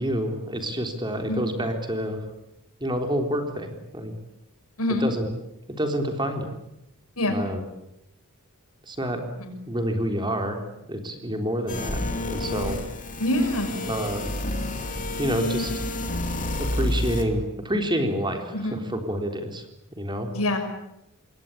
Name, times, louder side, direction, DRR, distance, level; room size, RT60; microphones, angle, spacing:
voice 1, 0.0-2.2 2.8-4.1 5.0-5.3 5.8-6.6 7.3-7.6 8.9-9.2 9.7-10.6 10.9-12.0 12.3-12.8 13.9-14.3 15.2-15.7 16.6-19.6 20.0-20.3, equal, 20° right, 5 dB, 3.8 m, -28 dB
voice 2, 4.8-5.1 7.2-7.3 9.4-9.5 13.2-13.8 18.5-18.8 20.3-20.6, left 1 dB, 85° left, 6 dB, 6.1 m, -25 dB
sound 1, 11.7-17.2, left 1 dB, 35° left, 3.6 m, -29 dB
27.5 x 21.5 x 8.7 m, 0.86 s
head